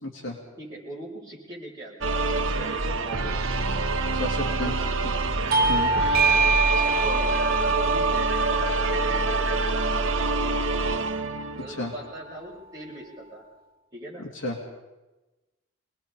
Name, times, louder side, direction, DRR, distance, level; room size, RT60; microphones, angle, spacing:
voice 1, 0.0-0.4 4.1-4.7 5.0-5.1 5.7-5.9 11.7-11.9 14.2-14.6, left 1 dB, 65° left, 0 dB, 2.8 m, -32 dB
voice 2, 0.6-3.4 4.5-4.8 5.6-6.0 6.2-10.8 11.6-13.4 13.9-14.3, right 1 dB, 20° right, -6 dB, 7.8 m, -41 dB
sound 1, 2.0-12.0, right 3 dB, 65° right, 1.0 m, -26 dB
Bell / Doorbell, 5.5-10.6, right 3 dB, 45° right, 0.7 m, -25 dB
25.5 x 20.0 x 5.3 m, 1.1 s
head